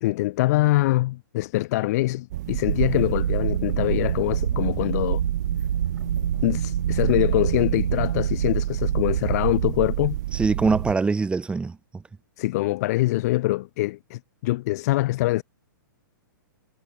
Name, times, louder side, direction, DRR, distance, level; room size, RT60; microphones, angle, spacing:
voice 1, 0.0-5.2 6.4-10.2 12.4-15.4, left 18 dB, 50° left, 1.1 m, -24 dB
sound 1, 2.3-10.9, right 15 dB, 55° right, 1.2 m, -29 dB
sound 2, 2.7-9.8, right 8 dB, 75° right, 1.8 m, -27 dB
voice 2, 10.3-12.0, right 4 dB, 10° right, 2.1 m, -23 dB
hypercardioid pair, 130°, 11 cm